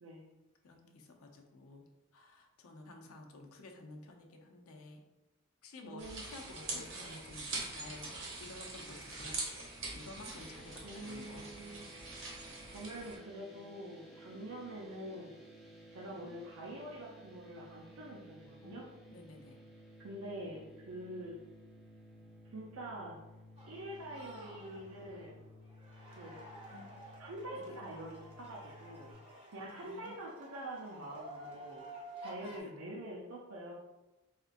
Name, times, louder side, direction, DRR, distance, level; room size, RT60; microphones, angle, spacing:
voice 1, 0.6-5.0 5.6-9.4 9.9-11.5 11.9-12.0 16.0-16.4 18.6-19.6 26.7-27.0 27.5-27.7 29.7-30.2 32.4-32.7, left 2 dB, 85° left, 2 dB, 0.5 m, -52 dB
voice 2, 5.8-6.2 6.6-6.8 10.8-11.8 12.7-15.4 15.9-18.8 20.0-21.4 22.5-23.2 23.6-25.4 26.1-26.4 27.2-29.1 29.5-31.8 32.2-33.7, right 1 dB, 80° right, -3 dB, 0.5 m, -45 dB
sound 1, 6.0-13.2, right 2 dB, 65° right, 0.9 m, -43 dB
sound 2, 10.4-29.1, equal, ahead, 0.3 m, -56 dB
sound 3, 23.6-32.6, right 1 dB, 25° right, 0.8 m, -52 dB
4.2 x 2.5 x 2.5 m, 1.0 s
head